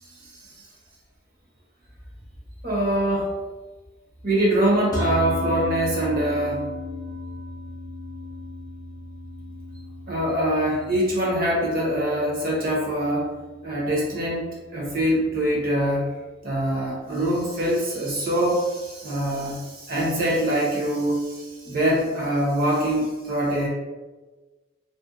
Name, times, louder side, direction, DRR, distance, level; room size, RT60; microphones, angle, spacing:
voice 1, 0.2-0.7 2.6-3.3 4.2-6.6 10.1-13.3 13.6-16.1 16.4-23.7, right 1 dB, 45° right, -4 dB, 0.8 m, -24 dB
sound 1, 4.9-15.4, left 1 dB, 20° left, 0.5 m, -35 dB
2.5 x 2.1 x 2.5 m, 1.3 s
head